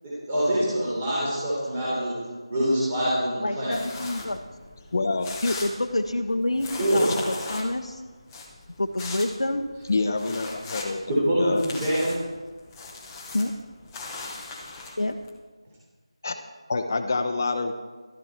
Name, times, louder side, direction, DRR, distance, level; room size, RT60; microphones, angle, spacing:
voice 1, 0.0-2.1 2.5-3.8 6.8-7.1 11.1-12.1, equal, 20° right, -8 dB, 3.5 m, -25 dB
voice 2, 3.4-4.4 5.4-8.0 8.8-9.6 13.3-13.5 15.0-15.2, left 1 dB, 85° left, 3 dB, 0.9 m, -27 dB
sound 1, 3.7-15.3, left 3 dB, 10° left, 0.9 m, -39 dB
voice 3, 4.9-5.3 9.9-11.0 11.3-11.6 16.2-16.3 16.7-17.7, left 3 dB, 35° left, 6 dB, 1.0 m, -26 dB
13.0 x 13.0 x 4.5 m, 1.3 s
figure-of-eight pair, 170°, 3 cm